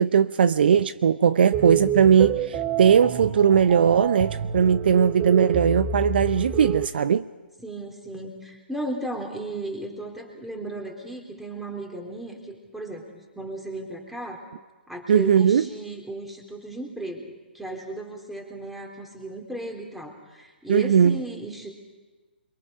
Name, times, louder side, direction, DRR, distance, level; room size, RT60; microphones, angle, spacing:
voice 1, 0.0-7.3 15.1-15.6 20.7-21.2, right 7 dB, 60° right, 0.7 m, -19 dB
sound 1, 1.5-6.9, right 7 dB, 25° right, 1.8 m, -29 dB
voice 2, 7.6-14.4 14.9-21.7, right 2 dB, 5° right, 3.7 m, -35 dB
28.5 x 23.0 x 5.2 m
figure-of-eight pair, 135°, 6 cm